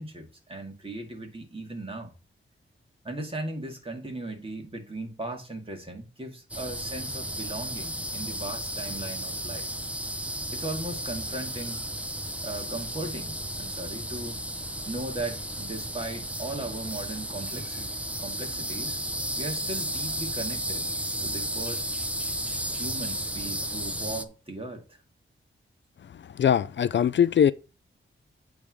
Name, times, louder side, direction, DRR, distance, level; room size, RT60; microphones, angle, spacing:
voice 1, 0.0-2.1 3.0-9.7 10.5-11.9 12.4-14.4 14.9-19.0 19.3-20.8 21.2-21.8 22.7-25.0, right 2 dB, 25° right, 2.2 m, -37 dB
sound 1, 6.5-24.3, right 1 dB, 5° right, 0.7 m, -33 dB
voice 2, 26.4-27.5, left 8 dB, 60° left, 0.4 m, -21 dB
8.7 x 3.5 x 6.2 m
wide cardioid pair, 100°, 21 cm